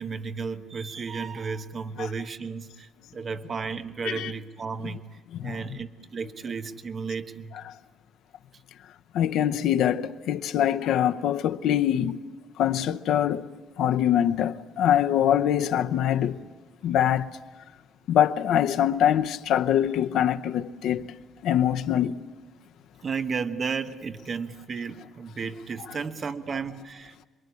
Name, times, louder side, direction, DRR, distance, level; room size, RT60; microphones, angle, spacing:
voice 1, 0.0-5.0 5.4-7.6 23.0-27.3, right 5 dB, 35° right, 1.2 m, -33 dB
voice 2, 9.1-12.2 12.6-13.5 13.8-16.4 16.8-17.3 18.1-21.1 21.4-22.2, left 10 dB, 75° left, 0.8 m, -24 dB
27.0 x 22.5 x 9.8 m
cardioid pair, 155°, 0 cm